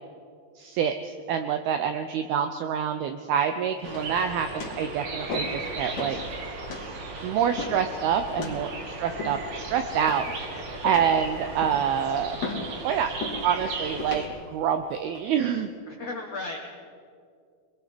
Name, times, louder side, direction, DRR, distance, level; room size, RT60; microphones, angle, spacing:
voice 1, 0.6-6.2 7.2-12.4 12.8-13.1 13.4-14.2 14.5-15.7, right 8 dB, 85° right, 8 dB, 2.2 m, -27 dB
sound 1, 3.8-4.2 4.6-4.8 5.3-5.6 6.0-6.2 6.7-6.9 7.6-7.9 8.4-8.6 9.2-9.6 10.1-10.4 10.8-11.2 11.6-11.9 12.4-12.7 13.2-13.4 14.0-14.3 14.9-15.2, left 4 dB, 40° left, 3.2 m, -35 dB
sound 2, 3.8-14.3, right 3 dB, 65° right, 4.3 m, -36 dB
voice 2, 10.7-11.0 15.9-16.6, left 3 dB, 80° left, 1 dB, 1.4 m, -36 dB
25.5 x 21.5 x 5.2 m, 2.3 s
omnidirectional pair, 5.3 m